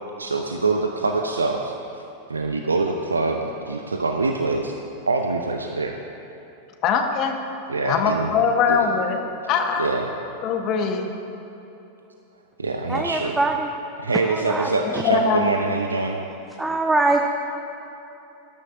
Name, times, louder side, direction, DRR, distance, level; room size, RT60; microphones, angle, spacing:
voice 1, 0.2-2.0 2.3-4.7 5.1-5.9 7.7-8.3 8.7-8.9 9.8-10.1 12.6-13.4 14.0-16.2, right 3 dB, 75° right, 3 dB, 0.7 m, -24 dB
voice 2, 6.8-7.3 7.8-9.2 9.5-9.9 10.4-11.1 14.8-15.4, left 6 dB, 40° left, 4 dB, 1.2 m, -22 dB
voice 3, 12.9-13.7 14.1-15.0 16.6-17.3, right 2 dB, 10° right, 3 dB, 0.7 m, -23 dB
19.0 x 12.5 x 2.7 m, 3.0 s
figure-of-eight pair, 90°, 0 cm